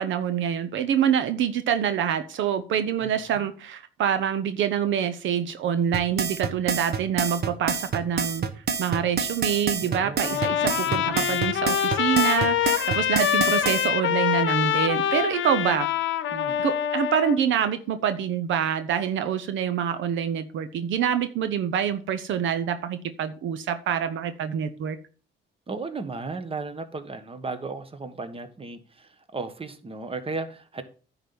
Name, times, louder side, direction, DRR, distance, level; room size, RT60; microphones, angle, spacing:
voice 1, 0.0-8.4 8.8-15.9 16.6-25.0, right 8 dB, 75° right, 10 dB, 0.8 m, -26 dB
voice 2, 3.0-3.5 9.8-11.4 16.3-16.6 25.7-30.8, right 3 dB, 30° right, 10 dB, 1.3 m, -36 dB
sound 1, 5.9-13.9, right 6 dB, 55° right, 1.2 m, -27 dB
Trumpet, 10.2-17.4, left 10 dB, 75° left, 0.9 m, -25 dB
10.0 x 4.0 x 6.9 m, 0.39 s
cardioid pair, 90°, 20 cm